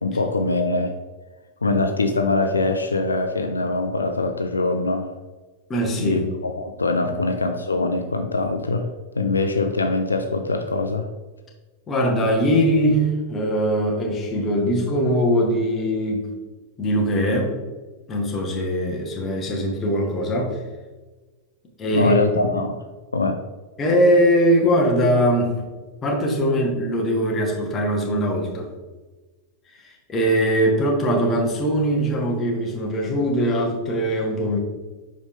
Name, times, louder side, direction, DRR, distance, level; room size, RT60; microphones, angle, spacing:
voice 1, 0.0-0.9 1.6-5.1 6.0-8.9 9.2-11.1 21.9-22.8 23.1-23.4, left 3 dB, 85° left, 6 dB, 0.5 m, -23 dB
voice 2, 5.7-6.2 7.0-7.2 11.9-16.3 16.8-17.5 18.1-20.6 21.8-22.2 22.4-22.6 23.8-25.6 26.0-28.7 29.8-34.6, equal, 25° left, -1 dB, 1.8 m, -21 dB
6.6 x 4.8 x 3.7 m, 1.2 s
figure-of-eight pair, 95°, 0 cm